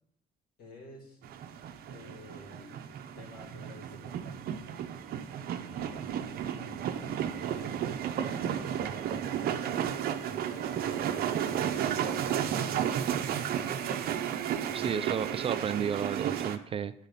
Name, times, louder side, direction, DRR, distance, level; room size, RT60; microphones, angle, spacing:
voice 1, 0.6-1.2 1.9-2.8 3.1-4.3 5.7-7.8 8.2-9.8 10.2-14.0 14.6-15.2, left 1 dB, 65° left, 0 dB, 2.8 m, -50 dB
sound 1, 1.2-16.6, right 9 dB, 65° right, 0.7 m, -33 dB
voice 2, 14.7-16.9, right 8 dB, 35° right, 13 dB, 0.3 m, -32 dB
11.5 x 4.1 x 5.6 m, 0.74 s
cardioid pair, 110°, 17 cm